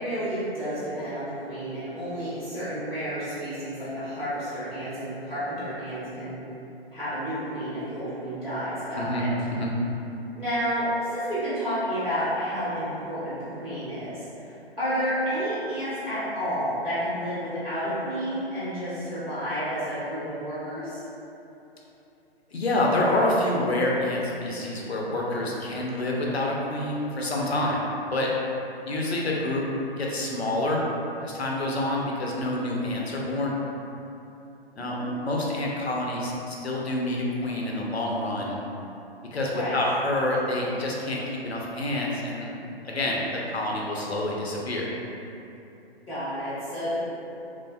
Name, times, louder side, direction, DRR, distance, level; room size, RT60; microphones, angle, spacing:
voice 1, 0.0-6.4 6.9-9.3 10.4-21.0 34.8-35.1 39.5-39.8 46.1-47.0, equal, ahead, -30 dB, 0.3 m, -30 dB
voice 2, 22.5-28.3 28.8-29.7 30.0-30.8 31.2-33.6 34.8-35.0 35.2-38.6 39.3-42.5 42.8-44.9, left 1 dB, 80° left, -3 dB, 0.6 m, -27 dB
3.2 x 2.1 x 2.5 m, 2.9 s
figure-of-eight pair, 125°, 31 cm